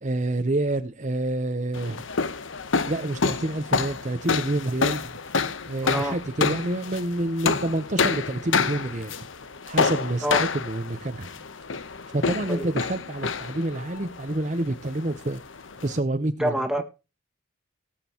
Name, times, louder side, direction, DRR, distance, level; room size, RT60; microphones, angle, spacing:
voice 1, 0.0-2.1 2.9-5.2 5.7-9.2 9.7-11.3 12.1-15.4 15.8-16.8, right 2 dB, 40° right, 0.8 m, -28 dB
sound 1, 1.7-16.0, left 4 dB, 90° left, 1.0 m, -28 dB
voice 2, 5.8-6.2 10.2-10.4 12.5-12.7 16.4-16.8, equal, 5° right, 1.7 m, -26 dB
18.5 x 7.6 x 3.0 m
head